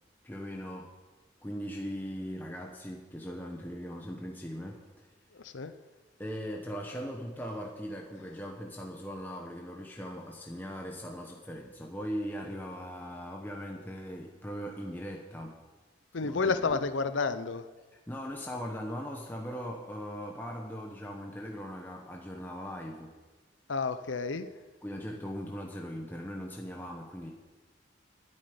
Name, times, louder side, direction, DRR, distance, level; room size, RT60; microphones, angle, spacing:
voice 1, 0.2-0.9 1.4-4.9 6.2-15.6 16.2-16.8 18.1-23.1 24.8-27.3, equal, 10° left, 0 dB, 1.0 m, -39 dB
voice 2, 5.3-5.7 16.1-17.6 23.7-24.5, left 4 dB, 80° left, 11 dB, 0.7 m, -30 dB
9.9 x 8.2 x 9.5 m, 1.3 s
head